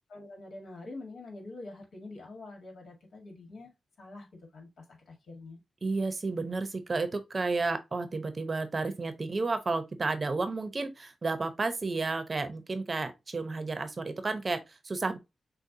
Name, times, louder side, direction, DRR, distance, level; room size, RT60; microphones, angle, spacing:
voice 1, 0.1-3.7 4.0-4.3 4.5-4.7 5.1-5.6, left 2 dB, 75° left, 1.7 m, -45 dB
voice 2, 5.8-15.2, right 3 dB, 40° right, 0.7 m, -32 dB
6.5 x 2.3 x 2.7 m
cardioid pair, 60°, 0 cm